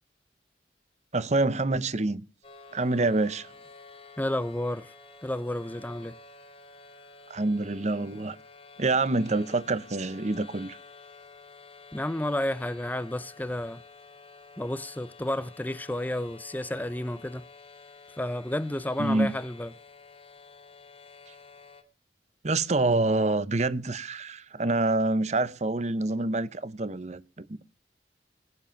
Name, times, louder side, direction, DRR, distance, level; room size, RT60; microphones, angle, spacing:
voice 1, 1.1-2.2 2.7-3.5 7.3-8.4 8.8-10.8 19.0-19.3 22.4-27.6, right 2 dB, 40° right, 0.8 m, -26 dB
sound 1, 2.4-21.8, left 4 dB, 35° left, 2.4 m, -51 dB
voice 2, 4.2-4.9 5.2-6.2 11.9-13.8 14.6-17.5 18.2-19.7, left 1 dB, 10° left, 0.6 m, -31 dB
19.5 x 7.8 x 5.9 m
head